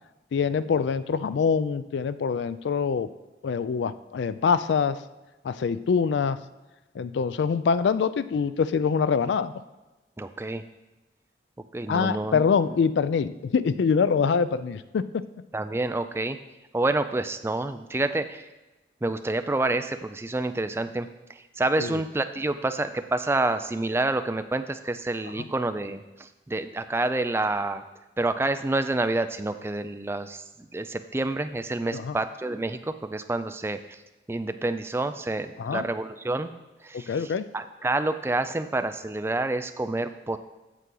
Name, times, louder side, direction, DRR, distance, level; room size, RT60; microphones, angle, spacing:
voice 1, 0.3-3.1 3.4-5.0 5.4-6.4 7.0-9.5 11.9-15.2 21.8-22.0 25.4-25.5 31.9-32.2 35.6-35.9 36.9-37.5, left 6 dB, 75° left, 14 dB, 0.3 m, -25 dB
voice 2, 10.2-10.6 11.7-12.4 15.5-16.4 16.7-18.4 19.0-27.8 28.2-34.0 34.3-36.5 36.8-37.2 37.5-40.4, right 2 dB, 15° right, 9 dB, 0.3 m, -28 dB
8.2 x 7.4 x 3.8 m, 1.1 s
head